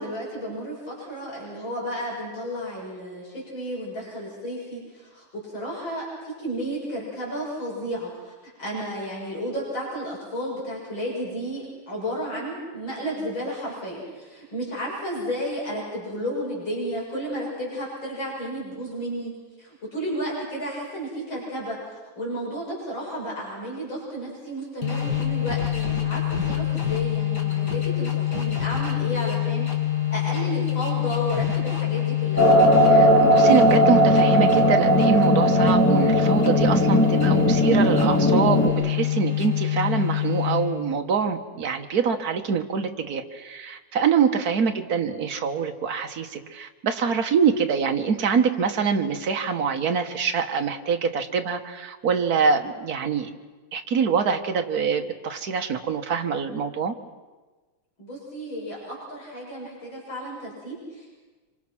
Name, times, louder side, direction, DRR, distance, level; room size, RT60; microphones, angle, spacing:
voice 1, 0.0-8.3 8.6-19.3 19.6-29.7 30.1-32.4 58.0-61.1, equal, 75° left, -4 dB, 8.2 m, -32 dB
sound 1, 24.8-40.9, left 12 dB, 55° left, 3.2 m, -26 dB
sound 2, 32.4-38.7, right 1 dB, 5° left, 3.3 m, -18 dB
voice 2, 32.9-53.3 53.7-56.9, right 6 dB, 50° right, 5 dB, 1.8 m, -25 dB
26.5 x 26.0 x 6.1 m, 1.3 s
omnidirectional pair, 2.1 m